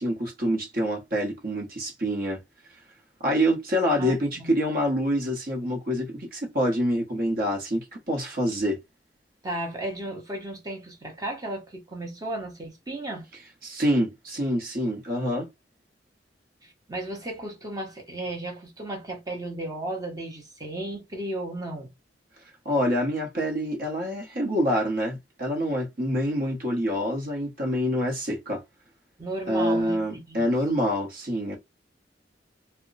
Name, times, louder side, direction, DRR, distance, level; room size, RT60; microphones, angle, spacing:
voice 1, 0.0-2.4 3.2-8.8 13.6-15.5 22.6-28.6 29.5-31.6, equal, 50° right, 1.0 m, -26 dB
voice 2, 4.0-4.5 9.4-13.3 16.6-21.9 29.2-30.5, right 1 dB, 20° right, 0.9 m, -34 dB
2.2 x 2.1 x 3.8 m
head